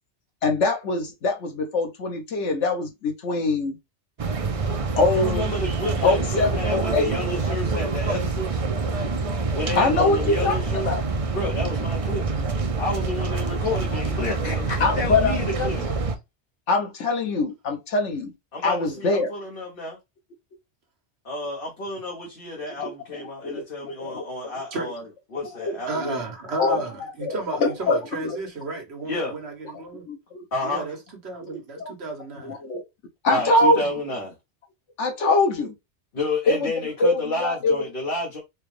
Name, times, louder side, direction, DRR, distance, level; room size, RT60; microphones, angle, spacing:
voice 1, 0.4-3.8 5.0-5.4 6.0-7.1 9.8-11.0 13.7-13.8 14.8-16.0 16.7-18.3 18.6-19.3 22.8-22.9 23.4-24.2 25.6-25.8 26.0-26.1 26.6-26.8 27.2-28.0 28.2-28.4 30.1-30.2 31.5-31.9 32.4-32.8 33.2-33.8 35.0-35.7 36.5-36.7 37.0-37.8, left 3 dB, 85° left, 1.3 m, -23 dB
sound 1, 4.2-16.1, right 3 dB, 40° right, 0.5 m, -26 dB
voice 2, 5.1-8.6 9.5-10.9 11.3-12.3 12.8-15.8 18.5-20.0 21.2-25.0 25.3-26.2 29.1-29.4 30.5-30.9 33.3-34.3 36.1-38.4, left 2 dB, 55° left, 1.2 m, -30 dB
voice 3, 5.6-6.1 24.7-24.9 25.9-30.0 30.6-31.0 31.2-32.6, right 2 dB, 65° right, 1.4 m, -33 dB
4.3 x 2.4 x 3.2 m
omnidirectional pair, 1.2 m